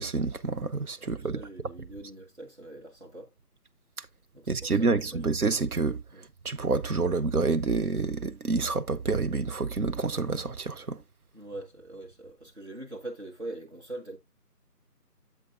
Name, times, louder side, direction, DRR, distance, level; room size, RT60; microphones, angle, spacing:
voice 1, 0.0-1.4 4.5-6.0 6.4-11.0, right 4 dB, 65° right, 0.8 m, -28 dB
voice 2, 1.0-3.3 4.3-5.3 6.1-6.3 11.3-14.2, right 1 dB, 45° right, 1.7 m, -43 dB
8.5 x 7.4 x 2.5 m
figure-of-eight pair, 170°, 48 cm